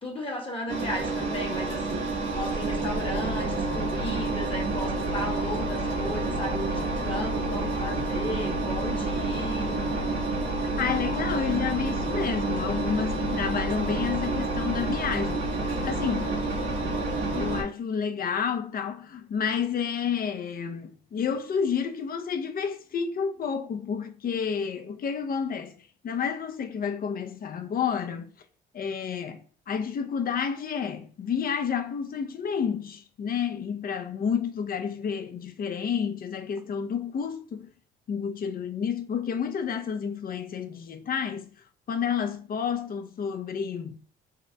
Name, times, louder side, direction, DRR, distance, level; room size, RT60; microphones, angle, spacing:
voice 1, 0.0-9.8, equal, 25° left, 1.1 m, -35 dB
Engine, 0.7-17.6, right 2 dB, 85° right, 1.1 m, -29 dB
voice 2, 10.8-15.5 15.8-16.4 17.3-25.8 26.0-28.3 28.7-29.4 29.7-37.7 38.1-41.5 41.9-44.0, left 7 dB, 50° left, 0.6 m, -30 dB
3.8 x 2.0 x 4.4 m
cardioid pair, 90°, 20 cm